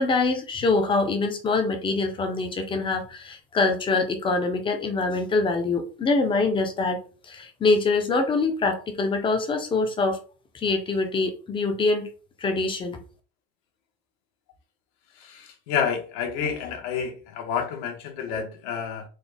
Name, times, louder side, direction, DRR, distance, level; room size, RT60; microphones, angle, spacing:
voice 1, 0.0-10.2 10.6-12.1 12.4-13.0, left 3 dB, 15° left, 6 dB, 0.4 m, -24 dB
voice 2, 15.2-19.0, left 7 dB, 80° left, 3 dB, 1.0 m, -29 dB
3.9 x 2.1 x 3.3 m, 0.37 s
cardioid pair, 160°, 31 cm